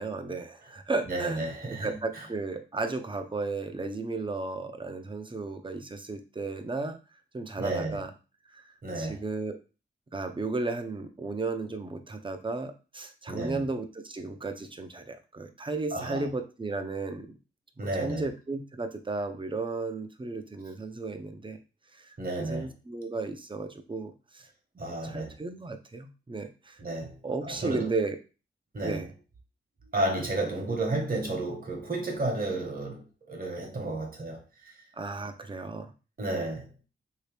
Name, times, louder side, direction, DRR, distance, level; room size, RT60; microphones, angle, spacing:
voice 1, 0.0-1.5 1.8-7.0 7.3-8.1 8.5-9.6 10.1-17.3 18.0-21.6 21.9-24.5 24.9-26.8 27.2-28.2 28.8-29.1 34.9-35.9, right 3 dB, 25° right, 0.6 m, -34 dB
voice 2, 1.1-2.2 7.6-8.0 8.8-9.2 13.3-13.6 15.9-16.3 17.8-18.2 22.2-22.7 24.8-25.4 26.8-27.9 28.7-29.0 29.9-34.7 36.2-36.7, right 2 dB, 45° right, 1.2 m, -32 dB
3.1 x 2.8 x 3.3 m
cardioid pair, 65°, 20 cm